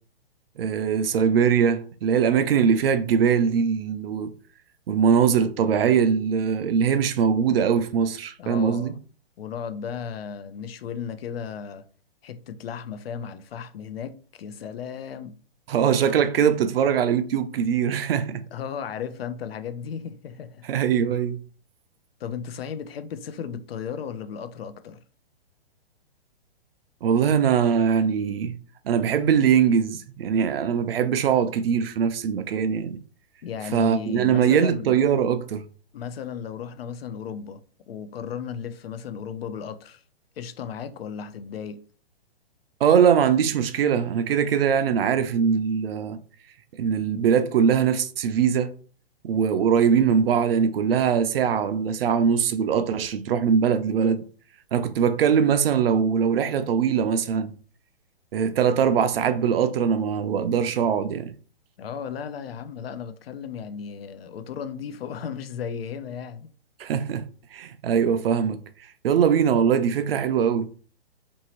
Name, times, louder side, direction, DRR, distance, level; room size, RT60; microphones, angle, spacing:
voice 1, 0.6-4.3 4.9-8.9 15.7-18.4 20.7-21.4 27.0-28.5 28.8-33.0 33.7-35.6 42.8-46.2 46.7-48.7 49.2-54.2 54.7-57.5 58.3-61.3 66.8-67.2 67.5-68.6 69.0-70.7, right 7 dB, 65° right, 0.5 m, -22 dB
voice 2, 8.4-9.0 9.4-11.8 12.2-15.4 18.5-20.7 22.2-25.0 33.4-35.0 35.9-37.6 37.9-40.0 40.4-41.8 61.8-66.5, left 7 dB, 70° left, 0.5 m, -35 dB
2.9 x 2.7 x 2.9 m
hypercardioid pair, 140°, 31 cm